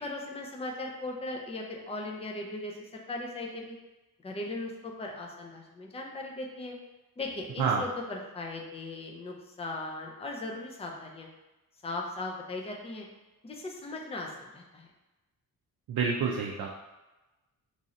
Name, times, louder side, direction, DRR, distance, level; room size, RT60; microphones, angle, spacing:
voice 1, 0.0-3.8 4.2-6.7 7.2-11.3 11.8-13.1 13.4-14.9, left 2 dB, 15° left, 0 dB, 0.5 m, -38 dB
voice 2, 15.9-16.7, right 5 dB, 60° right, -1 dB, 0.5 m, -28 dB
3.1 x 2.8 x 3.7 m, 1.1 s
wide cardioid pair, 130°, 38 cm